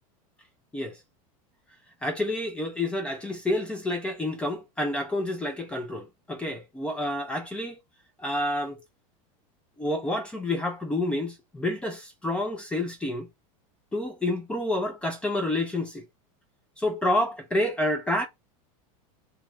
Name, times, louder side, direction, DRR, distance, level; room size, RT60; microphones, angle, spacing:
voice 1, 2.0-7.7 8.2-8.8 9.8-13.3 13.9-16.0 16.8-18.3, left 1 dB, 5° left, 0.4 m, -29 dB
2.9 x 2.4 x 3.1 m
supercardioid pair, 170°, 18 cm